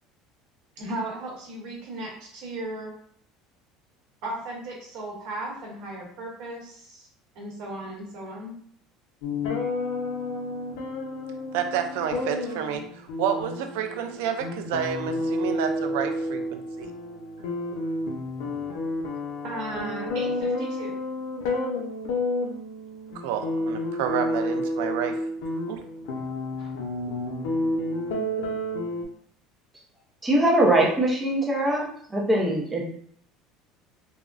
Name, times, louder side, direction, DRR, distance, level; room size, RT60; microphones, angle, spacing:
voice 1, 0.8-2.9 4.2-7.1 7.3-8.5 19.4-21.0 26.6-26.7, right 1 dB, 55° right, -3 dB, 1.0 m, -36 dB
sound 1, 9.2-29.0, left 1 dB, 85° left, 0.5 m, -30 dB
voice 2, 11.5-16.9 23.1-25.2 25.7-25.8, right 8 dB, 80° right, 6 dB, 0.3 m, -30 dB
voice 3, 30.2-32.8, right 1 dB, 10° right, -3 dB, 0.5 m, -22 dB
3.5 x 2.0 x 2.4 m, 0.62 s
cardioid pair, 180°, 0 cm